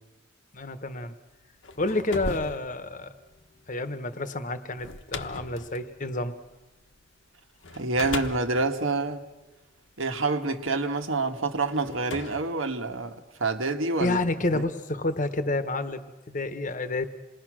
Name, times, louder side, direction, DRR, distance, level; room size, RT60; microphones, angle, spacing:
voice 1, 0.5-1.1 1.8-3.1 3.7-6.4 14.0-17.1, left 2 dB, 35° left, 1.2 m, -29 dB
sound 1, 1.4-7.0 7.6-10.1 10.9-11.0 11.7-13.4, left 3 dB, 65° left, 1.2 m, -39 dB
voice 2, 7.7-9.2 10.0-14.2 14.5-14.6, right 3 dB, 70° right, 1.6 m, -27 dB
27.5 x 21.0 x 6.3 m
head